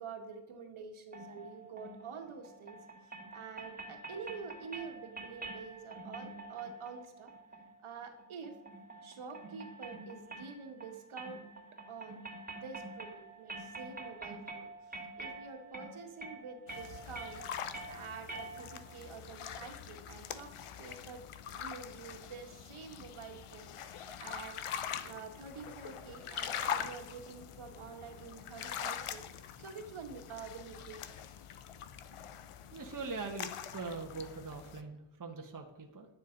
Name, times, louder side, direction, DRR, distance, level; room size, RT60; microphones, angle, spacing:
voice 1, 0.0-2.8 3.3-7.3 7.8-8.6 9.0-11.4 11.9-12.2 12.5-17.5 17.9-24.6 25.0-31.2, right 5 dB, 70° right, 4 dB, 2.0 m, -47 dB
sound 1, 1.1-19.0, right 2 dB, 15° right, 2.4 m, -47 dB
sound 2, 16.7-34.8, left 9 dB, 80° left, 1.0 m, -43 dB
voice 2, 32.7-36.1, right 4 dB, 40° right, 2 dB, 1.5 m, -42 dB
11.5 x 9.8 x 5.4 m, 0.94 s
cardioid pair, 90°, 50 cm